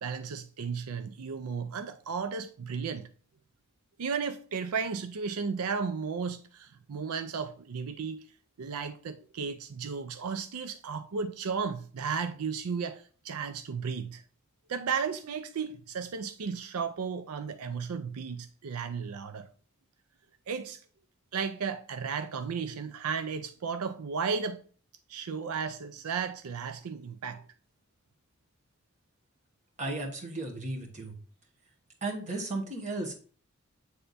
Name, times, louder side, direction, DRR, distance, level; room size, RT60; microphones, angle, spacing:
voice 1, 0.0-3.1 4.0-8.2 8.6-14.2 14.7-19.5 20.5-20.8 21.3-24.6 25.1-27.4, right 5 dB, 85° right, 0.5 m, -34 dB
voice 2, 29.8-31.2 32.0-33.1, right 2 dB, 35° right, 1.3 m, -34 dB
8.0 x 3.4 x 4.0 m
head